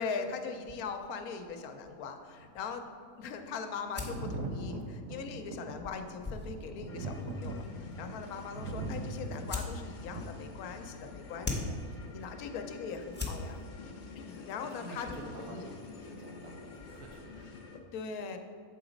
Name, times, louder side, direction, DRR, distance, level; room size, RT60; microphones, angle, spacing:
voice 1, 0.0-2.9 3.2-11.7 12.1-13.6 14.3-15.1 15.4-15.7 17.9-18.4, left 5 dB, 85° left, 6 dB, 1.1 m, -40 dB
sound 1, 0.6-17.5, left 2 dB, 10° left, 0.7 m, -45 dB
Thunder, 4.0-11.3 12.5-12.6, right 2 dB, 70° right, 0.9 m, -41 dB
sound 2, 6.9-17.8, left 5 dB, 60° left, 0.5 m, -49 dB
voice 2, 13.8-14.1 14.8-17.8, right 1 dB, 90° right, 0 dB, 1.6 m, -49 dB
7.2 x 3.9 x 5.0 m, 2.2 s
omnidirectional pair, 1.5 m